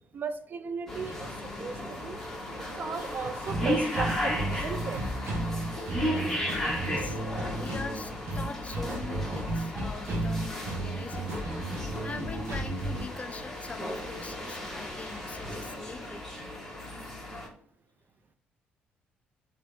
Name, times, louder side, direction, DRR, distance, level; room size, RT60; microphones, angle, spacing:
voice 1, 0.1-1.3 1.6-2.2 2.6-5.0, right 5 dB, 45° right, 10 dB, 0.4 m, -36 dB
sound 1, 0.9-17.5, left 1 dB, 5° left, 1.5 m, -35 dB
sound 2, 3.5-13.1, right 2 dB, 60° right, 1.1 m, -34 dB
voice 2, 6.1-7.2 7.5-11.4 12.0-16.2, left 4 dB, 30° left, 8 dB, 0.4 m, -42 dB
sound 3, 10.7-16.4, equal, 10° right, 1.0 m, -50 dB
3.3 x 3.1 x 2.7 m, 0.65 s
supercardioid pair, 55°, 5 cm